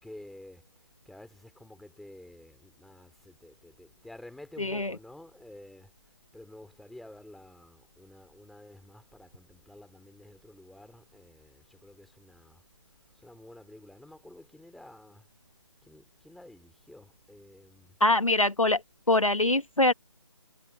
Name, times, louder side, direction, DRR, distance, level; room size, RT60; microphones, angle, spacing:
voice 1, 0.0-12.6 12.9-15.3 15.8-18.0 19.1-19.2, left 1 dB, ahead, 3.3 m, -51 dB
voice 2, 4.6-4.9 18.0-18.8 19.1-19.9, left 2 dB, 85° left, 1.6 m, -23 dB
figure-of-eight pair, 155°, 17 cm